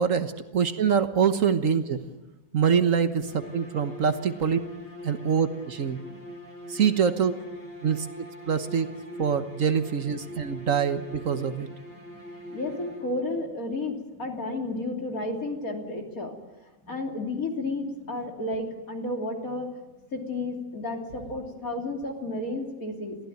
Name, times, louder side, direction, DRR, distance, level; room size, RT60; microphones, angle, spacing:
voice 1, 0.0-2.0 2.5-4.6 5.0-6.0 6.7-7.3 7.8-8.9 9.2-11.7, right 7 dB, 65° right, 9 dB, 1.6 m, -25 dB
sound 1, 3.2-13.4, equal, 40° left, 5.0 m, -43 dB
voice 2, 11.9-16.3 16.9-19.7 20.1-23.2, left 2 dB, 80° left, 1 dB, 3.5 m, -32 dB
22.5 x 15.5 x 9.3 m, 1.1 s
omnidirectional pair, 1.5 m